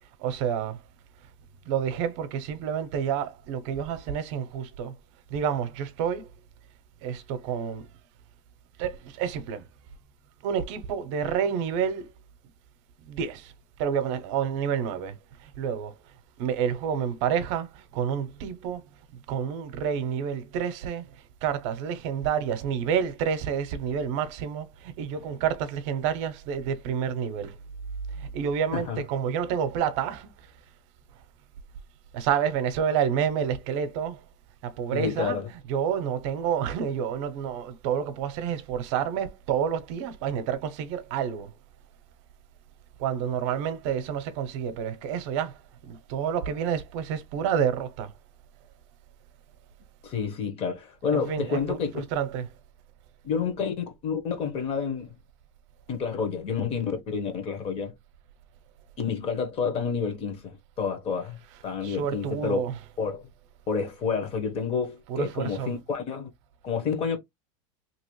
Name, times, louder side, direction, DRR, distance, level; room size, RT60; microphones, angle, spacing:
voice 1, 0.2-0.8 1.7-4.9 5.3-6.3 7.0-7.9 8.8-9.6 10.4-12.1 13.1-13.5 13.8-15.1 15.4-15.9 16.4-18.8 19.3-21.0 21.4-27.6 28.2-30.3 32.1-34.2 34.6-35.4 35.7-41.5 43.0-45.6 45.9-48.1 51.1-52.5 61.8-62.7 65.1-65.7, right 8 dB, 60° right, 0.7 m, -29 dB
voice 2, 34.9-35.5 50.0-52.0 53.2-55.1 55.9-57.9 59.0-61.4 61.6-62.6 63.0-63.3 63.7-66.3 66.6-67.2, left 6 dB, 35° left, 1.1 m, -29 dB
3.0 x 2.9 x 3.0 m
supercardioid pair, 145°, 17 cm